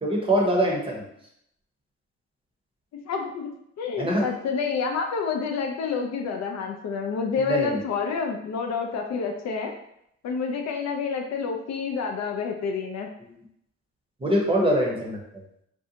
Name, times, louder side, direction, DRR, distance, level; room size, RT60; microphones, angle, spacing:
voice 1, 0.0-1.0 4.0-4.2 7.4-7.8 14.2-15.2, equal, 20° right, -2 dB, 0.7 m, -23 dB
voice 2, 3.0-3.5 3.8-9.7 10.2-13.1, left 5 dB, 60° left, 3 dB, 0.4 m, -28 dB
2.6 x 2.1 x 2.7 m, 0.76 s
cardioid pair, 90°, 30 cm